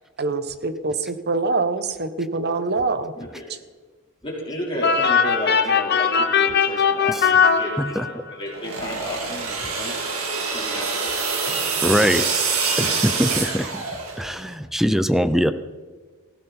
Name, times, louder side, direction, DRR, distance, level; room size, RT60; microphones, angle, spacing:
voice 1, 0.2-3.1, right 3 dB, 50° right, 11 dB, 1.1 m, -24 dB
voice 2, 3.2-3.5 4.2-10.0 10.3-11.6 12.8-12.9 13.2-13.3, equal, 25° left, -4 dB, 4.2 m, -33 dB
sound 1, 4.8-8.3, left 6 dB, 50° left, 1.1 m, -19 dB
sound 2, 8.5-14.4, right 4 dB, 85° right, 3.3 m, -25 dB
voice 3, 11.8-12.3 12.8-13.8 14.2-15.5, equal, ahead, 12 dB, 0.6 m, -22 dB
18.0 x 16.0 x 4.4 m, 1.4 s
head